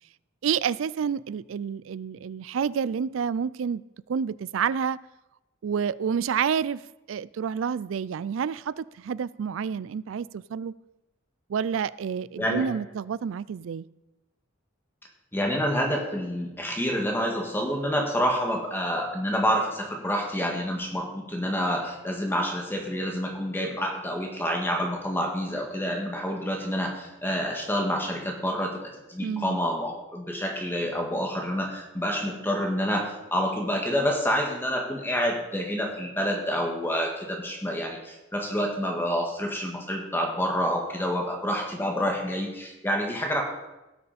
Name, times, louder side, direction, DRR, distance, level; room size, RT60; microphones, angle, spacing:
voice 1, 0.4-5.0 5.6-6.8 7.1-10.7 11.5-13.9 29.2-29.6, right 7 dB, 70° right, 0.4 m, -29 dB
voice 2, 15.3-43.4, equal, 10° left, 1.6 m, -28 dB
17.5 x 6.9 x 4.2 m
head